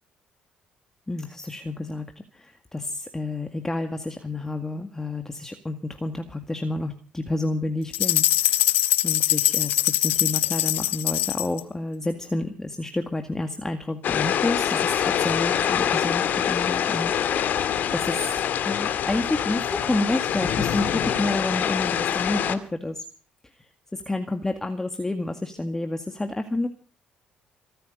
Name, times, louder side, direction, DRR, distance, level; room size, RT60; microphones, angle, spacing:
voice 1, 1.1-8.7 9.0-17.6 17.9-18.4 18.6-23.0 23.9-26.7, left 2 dB, 15° left, 6 dB, 2.0 m, -30 dB
sound 1, 7.9-11.6, left 16 dB, 85° left, 1.2 m, -22 dB
sound 2, 14.0-22.5, left 9 dB, 60° left, 2.1 m, -25 dB
26.0 x 9.2 x 5.2 m, 0.38 s
cardioid pair, 90°, 3 cm